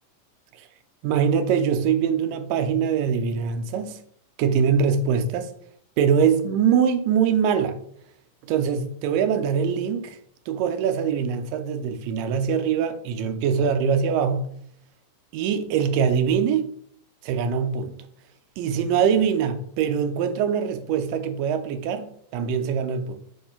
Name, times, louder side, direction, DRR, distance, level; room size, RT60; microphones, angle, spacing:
voice 1, 1.0-4.0 4.4-5.5 6.0-7.8 8.5-10.2 10.5-14.5 15.3-16.7 17.2-17.9 18.6-23.1, right 7 dB, 85° right, 2.3 m, -23 dB
7.0 x 3.1 x 5.6 m
omnidirectional pair, 3.8 m